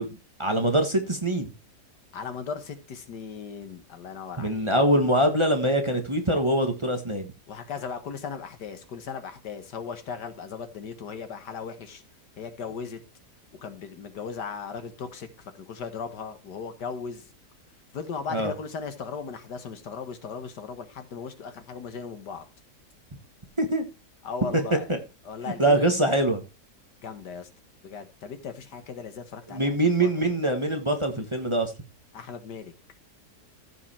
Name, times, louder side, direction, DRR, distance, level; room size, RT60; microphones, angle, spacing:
voice 1, 0.0-1.5 4.4-7.3 18.3-18.5 23.6-23.8 24.5-24.6 24.9-25.0 25.6-26.4 29.5-31.7, right 1 dB, 20° right, 4 dB, 1.4 m, -24 dB
voice 2, 2.1-4.7 7.5-12.0 12.4-13.0 13.5-17.3 17.9-22.5 24.2-24.9 25.3-25.9 27.0-27.5 27.8-30.1 32.1-32.7, left 6 dB, 85° left, 8 dB, 2.0 m, -37 dB
14.5 x 5.6 x 4.3 m, 0.28 s
omnidirectional pair, 1.8 m